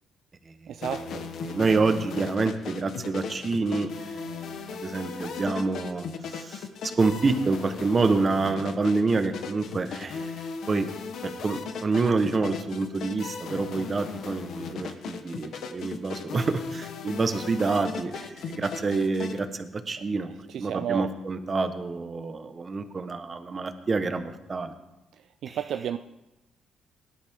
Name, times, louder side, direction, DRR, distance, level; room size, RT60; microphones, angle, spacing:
voice 1, 0.7-1.3 20.2-21.1 25.4-26.0, right 10 dB, 70° right, 9 dB, 0.5 m, -32 dB
sound 1, 0.8-19.4, left 5 dB, 70° left, 1.1 m, -37 dB
voice 2, 1.4-10.9 11.2-20.3 20.6-24.7 25.5-25.6, right 3 dB, 35° right, 9 dB, 1.2 m, -27 dB
18.0 x 11.5 x 3.7 m, 0.94 s
cardioid pair, 90°, 0 cm